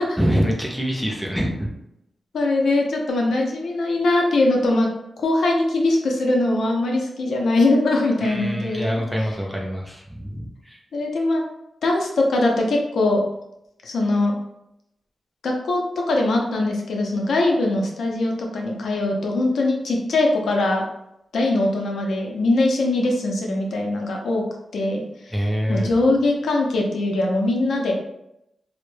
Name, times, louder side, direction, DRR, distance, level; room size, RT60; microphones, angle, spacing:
voice 1, 0.2-1.7 8.2-10.8 25.3-25.9, equal, ahead, -1 dB, 0.4 m, -25 dB
voice 2, 2.3-4.9 5.2-8.9 10.9-11.4 11.8-13.2 13.8-14.4 15.4-20.8 21.3-24.4 24.7-25.0 25.7-27.9, left 2 dB, 75° left, 0 dB, 0.4 m, -21 dB
2.1 x 2.0 x 3.1 m, 0.82 s
wide cardioid pair, 175°, 0 cm